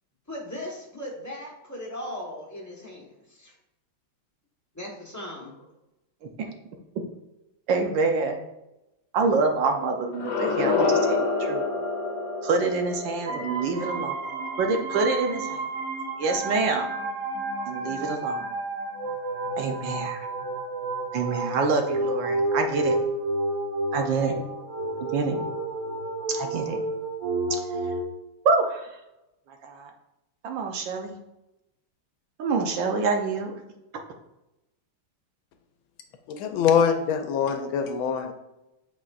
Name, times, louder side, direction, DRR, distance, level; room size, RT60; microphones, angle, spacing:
voice 1, 0.3-3.6 4.7-5.7, left 1 dB, 10° left, -3 dB, 1.0 m, -38 dB
voice 2, 6.2-6.5 7.7-8.4 9.1-11.6 12.4-14.2 14.6-15.6 16.2-16.9 17.7-18.5 19.6-20.3 21.1-23.0 23.9-24.4 25.1-25.4 26.3-26.8 27.5-27.6 28.4-28.9 29.6-29.9 30.4-31.2 32.4-33.5, right 4 dB, 70° right, 3 dB, 1.3 m, -26 dB
sound 1, 10.1-15.0, left 4 dB, 60° left, 1.3 m, -28 dB
sound 2, 13.3-28.0, right 2 dB, 50° right, 1.3 m, -30 dB
voice 3, 36.3-38.3, left 7 dB, 80° left, 7 dB, 1.4 m, -23 dB
8.2 x 5.2 x 2.5 m, 0.94 s
omnidirectional pair, 2.3 m